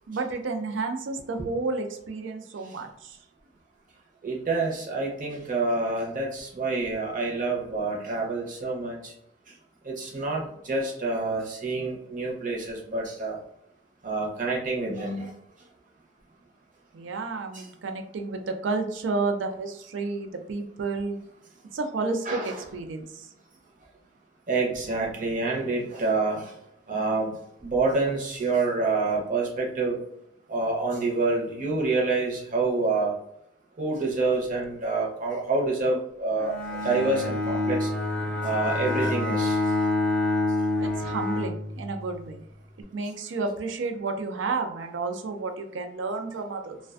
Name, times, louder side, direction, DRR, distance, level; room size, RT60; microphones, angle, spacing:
voice 1, 0.1-3.2 16.9-21.2 21.7-23.3 40.8-42.4 42.9-46.8, right 3 dB, 85° right, 6 dB, 0.4 m, -31 dB
voice 2, 4.2-9.1 9.8-13.4 14.0-15.3 17.5-17.6 22.3-22.6 24.5-26.5 26.9-27.3 27.6-30.0 30.5-33.1 33.8-37.9 38.4-39.6, right 3 dB, 45° right, -1 dB, 0.7 m, -27 dB
Bowed string instrument, 36.4-42.2, left 2 dB, 5° left, 0.3 m, -27 dB
2.4 x 2.2 x 2.4 m, 0.78 s
head